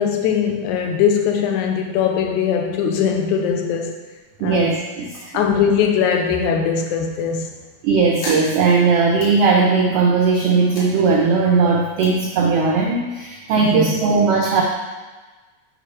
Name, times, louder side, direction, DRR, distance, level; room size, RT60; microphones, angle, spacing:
voice 1, 0.0-3.9 4.4-4.6 5.3-7.5 13.6-14.0, left 7 dB, 85° left, 3 dB, 2.1 m, -20 dB
voice 2, 4.4-5.3 7.8-14.6, right 4 dB, 90° right, 0 dB, 1.3 m, -18 dB
sound 1, 8.2-10.0 10.4-13.1, left 1 dB, 55° left, 2.6 m, -36 dB
9.1 x 5.0 x 3.2 m, 1.3 s
omnidirectional pair, 3.4 m